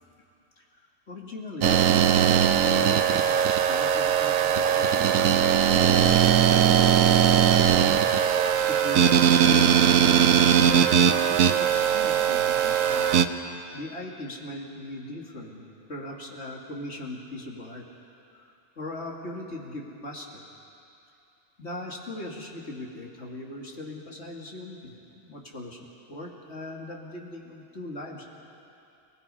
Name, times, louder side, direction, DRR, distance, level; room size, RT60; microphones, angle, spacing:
voice 1, 1.1-8.0 8.7-13.1 13.7-15.6 15.9-17.8 18.3-20.4 21.6-25.8 26.1-28.3, left 1 dB, 55° left, -1 dB, 2.7 m, -39 dB
sound 1, 1.6-13.2, right 9 dB, 85° right, 1.2 m, -20 dB
30.0 x 19.5 x 5.6 m, 2.7 s
omnidirectional pair, 1.4 m